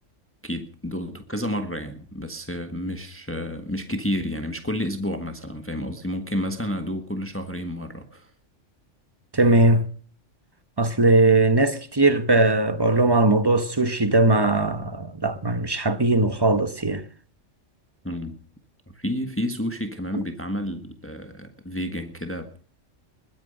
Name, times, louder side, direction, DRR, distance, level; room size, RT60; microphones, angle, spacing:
voice 1, 0.4-8.3 18.0-18.4 18.9-22.6, equal, 10° left, 1.5 m, -30 dB
voice 2, 9.3-9.9 10.8-17.0, right 2 dB, 20° right, 1.0 m, -19 dB
21.5 x 9.4 x 6.6 m
omnidirectional pair, 1.3 m